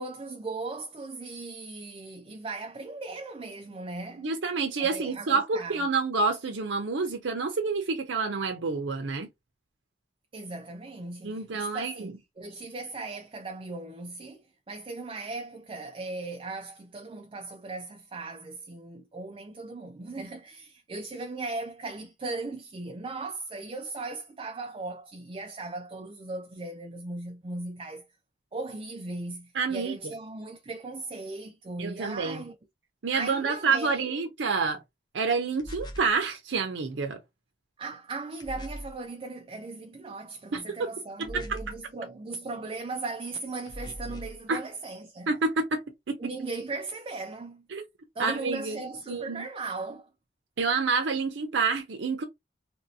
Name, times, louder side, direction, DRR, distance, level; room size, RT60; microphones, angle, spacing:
voice 1, 0.0-4.3 4.8-5.8 10.3-28.1 28.5-32.5 33.1-34.2 37.8-45.3 46.2-47.7 48.2-50.1, right 3 dB, 30° right, 0.4 m, -38 dB
voice 2, 4.2-9.3 11.2-12.1 29.5-30.1 31.8-32.4 33.0-34.8 35.1-37.2 40.5-40.9 41.2-41.6 44.5-44.6 45.3-45.8 46.1-46.2 47.7-47.8 48.2-48.8 49.1-49.4 50.6-52.2, right 4 dB, 85° right, 0.6 m, -28 dB
sound 1, 35.6-36.2 38.4-39.0 41.2-41.9 43.7-44.4, equal, 25° left, 0.6 m, -40 dB
2.9 x 2.6 x 2.7 m
head